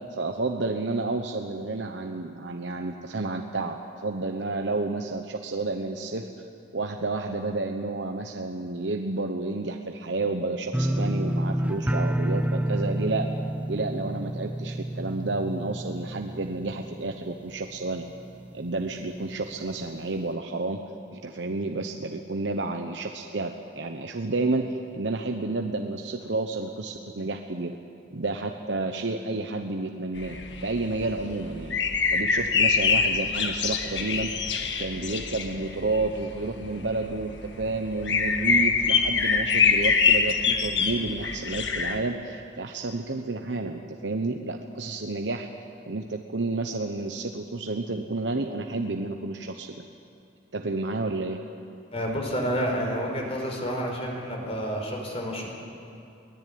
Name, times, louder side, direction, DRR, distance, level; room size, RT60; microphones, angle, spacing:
voice 1, 0.1-13.3 13.7-18.0 18.5-20.8 21.1-27.7 28.1-30.4 30.6-31.7 32.1-34.3 34.8-45.5 45.9-49.8 50.5-51.4, right 2 dB, 75° right, 4 dB, 1.1 m, -30 dB
sound 1, 10.7-17.6 17.9-18.4 18.8-18.9, right 1 dB, 10° right, 0.9 m, -29 dB
sound 2, 30.2-42.0, left 5 dB, 75° left, 1.8 m, -25 dB
voice 2, 51.9-55.5, equal, 35° left, 1 dB, 4.7 m, -29 dB
23.0 x 17.5 x 9.5 m, 2.7 s
head